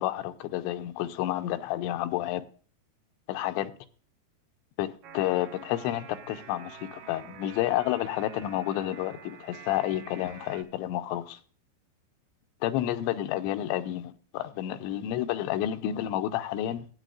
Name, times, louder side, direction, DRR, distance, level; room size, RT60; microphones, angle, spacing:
voice 1, 0.0-2.4 3.3-3.7 4.8-11.4 12.6-16.9, left 13 dB, 90° left, 3.0 m, -30 dB
sound 1, 5.0-10.6, right 6 dB, 70° right, 1.9 m, -47 dB
15.5 x 9.1 x 2.4 m
omnidirectional pair, 5.1 m